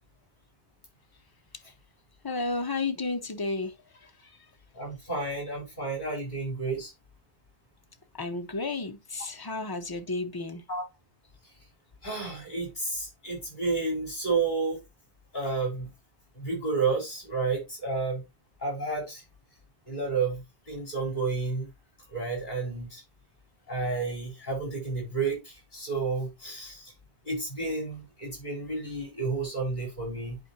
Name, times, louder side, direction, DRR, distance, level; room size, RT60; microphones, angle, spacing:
voice 1, 2.2-3.8 8.2-10.6, left 3 dB, 25° left, 0.6 m, -32 dB
voice 2, 4.7-6.9 10.7-10.8 12.0-14.8 15.3-15.9 16.3-18.2 18.6-19.2 19.9-21.7 22.1-23.0 23.7-26.9 27.2-30.4, right 4 dB, 45° left, 4.7 m, -31 dB
11.0 x 4.5 x 2.7 m
omnidirectional pair, 1.2 m